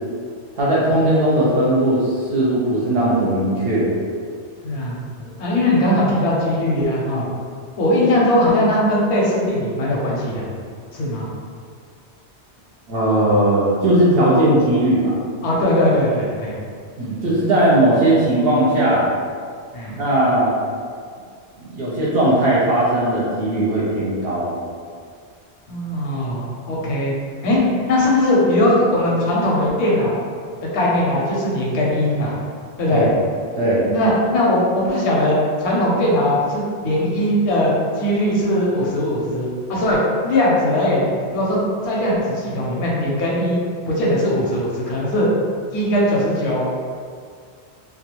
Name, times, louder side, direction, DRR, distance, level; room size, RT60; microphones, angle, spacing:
voice 1, 0.6-3.9 12.9-15.2 17.0-19.0 19.9-20.5 21.6-24.5 32.9-33.2 33.6-33.9, right 1 dB, 65° right, -7 dB, 0.7 m, -18 dB
voice 2, 4.6-7.3 7.8-10.5 10.9-11.3 15.4-16.6 19.7-20.0 25.7-27.1 27.4-30.2 30.6-32.3 32.8-33.1 33.9-45.3 45.7-46.8, left 1 dB, 80° left, -5 dB, 0.9 m, -20 dB
2.3 x 2.2 x 2.9 m, 2.1 s
omnidirectional pair, 1.2 m